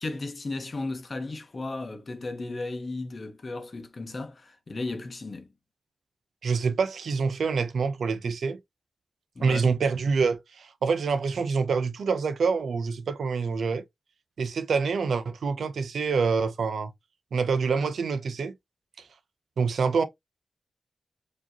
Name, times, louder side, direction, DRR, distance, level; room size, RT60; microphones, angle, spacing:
voice 1, 0.0-5.5 9.3-9.7, left 2 dB, 35° left, 0.9 m, -35 dB
voice 2, 6.4-8.6 9.4-13.8 14.4-16.9 17.3-18.5 19.6-20.0, right 5 dB, 85° right, 0.5 m, -26 dB
4.9 x 2.9 x 2.7 m
wide cardioid pair, 175°, 0 cm